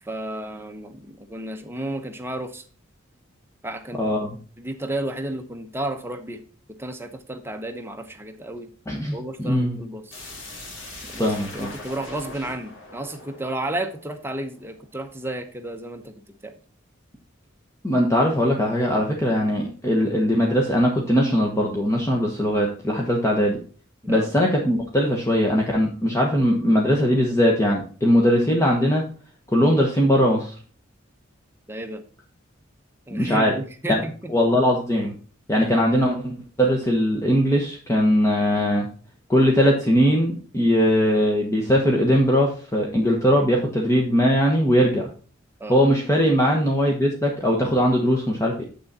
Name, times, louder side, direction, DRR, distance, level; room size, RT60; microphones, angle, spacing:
voice 1, 0.0-2.6 3.6-4.0 4.6-6.4 6.8-8.7 9.1-10.2 11.1-16.1 16.4-16.5 24.0-24.3 31.7-32.0 33.1-34.3 45.6-45.8, right 1 dB, 10° right, 5 dB, 0.9 m, -32 dB
voice 2, 4.0-4.3 8.9-9.8 11.2-11.7 17.8-23.6 24.1-29.0 29.5-30.5 33.1-33.5 33.9-34.0 34.3-35.1 35.5-38.9 39.3-45.1 45.7-48.6, equal, 15° left, -1 dB, 1.2 m, -20 dB
sound 1, 10.1-14.8, left 2 dB, 70° left, 3.8 m, -41 dB
8.1 x 6.3 x 4.2 m, 0.39 s
head